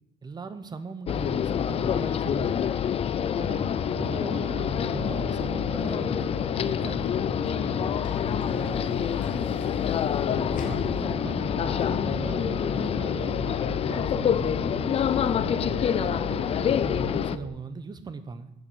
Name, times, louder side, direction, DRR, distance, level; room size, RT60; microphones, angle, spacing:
voice 1, 0.2-2.8 3.4-7.1 10.3-14.6 15.2-18.5, right 4 dB, 25° right, 0.7 m, -39 dB
sound 1, 1.1-17.4, left 9 dB, 35° left, 0.3 m, -27 dB
Piano, 3.1-17.5, right 3 dB, 90° right, 3.2 m, -40 dB
Sliding door / Slam, 6.9-11.6, left 6 dB, 50° left, 1.0 m, -42 dB
voice 2, 7.3-9.5 15.0-15.5, left 4 dB, 70° left, 1.1 m, -45 dB
7.2 x 5.9 x 6.7 m
cardioid pair, 110°, 17 cm